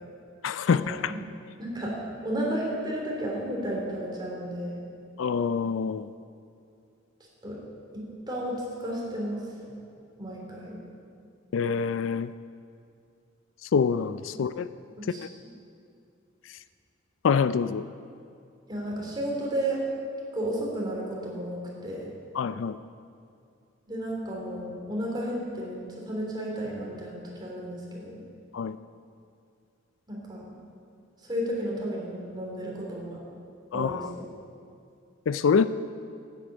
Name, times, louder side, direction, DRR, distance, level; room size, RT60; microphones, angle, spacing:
voice 1, 0.4-1.1 5.2-6.1 11.5-12.3 13.7-14.7 17.2-17.9 22.3-22.8 28.5-28.8 33.7-34.1 35.3-35.7, left 6 dB, 70° left, 14 dB, 0.4 m, -25 dB
voice 2, 1.6-4.8 7.4-7.6 7.9-9.4 10.2-10.8 15.0-15.3 18.7-19.8 20.3-22.1 23.9-28.2 30.1-30.5 31.2-33.2 33.7-34.2, right 1 dB, 20° right, -3 dB, 3.5 m, -33 dB
11.0 x 8.6 x 8.8 m, 2.5 s
head